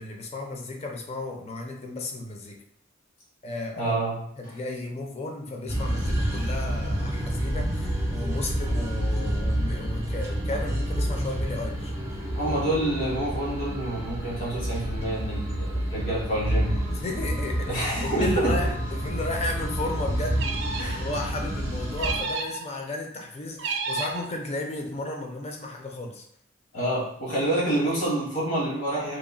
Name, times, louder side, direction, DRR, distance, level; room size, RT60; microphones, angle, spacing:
voice 1, 0.0-2.6 3.4-3.9 4.4-11.9 16.9-20.5 21.0-26.2, left 2 dB, 30° left, 2 dB, 0.4 m, -34 dB
voice 2, 3.8-4.2 4.4-4.6 12.3-16.9 17.7-18.7 20.8-21.1 26.7-29.2, right 1 dB, 70° left, -7 dB, 0.9 m, -28 dB
sound 1, 5.7-22.2, right 1 dB, 15° right, 0.8 m, -29 dB
sound 2, 20.3-21.0 22.0-22.6 23.6-24.3, right 4 dB, 60° right, 0.4 m, -31 dB
2.9 x 2.5 x 2.2 m, 0.69 s
head